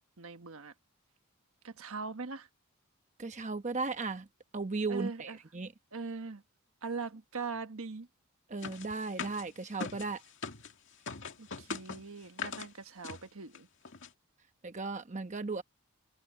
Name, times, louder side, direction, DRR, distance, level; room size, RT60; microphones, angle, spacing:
voice 1, 0.2-0.7 1.6-2.5 4.9-5.4 5.9-6.4 6.8-8.1 11.4-13.7, right 4 dB, 75° right, 1.3 m, -41 dB
voice 2, 3.2-4.3 4.5-5.7 8.5-10.2 14.6-15.6, right 3 dB, 35° right, 0.9 m, -36 dB
sound 1, 8.6-10.7 11.1-12.7 13.0-13.2 13.5-13.6 13.8-14.1, left 5 dB, 60° left, 2.2 m, -41 dB
head